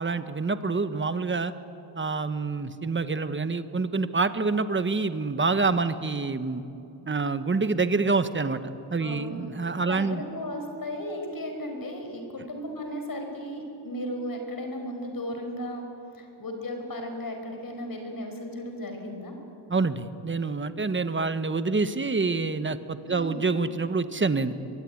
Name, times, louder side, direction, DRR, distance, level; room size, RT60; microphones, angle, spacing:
voice 1, 0.0-1.5 1.9-6.6 7.1-8.6 8.9-10.2 19.7-24.5, right 4 dB, 25° right, 11 dB, 1.2 m, -27 dB
voice 2, 9.0-9.4 9.8-15.9 16.1-19.3 23.0-23.4, equal, 45° left, 4 dB, 5.3 m, -35 dB
25.0 x 21.5 x 9.7 m, 2.8 s
wide cardioid pair, 125°, 48 cm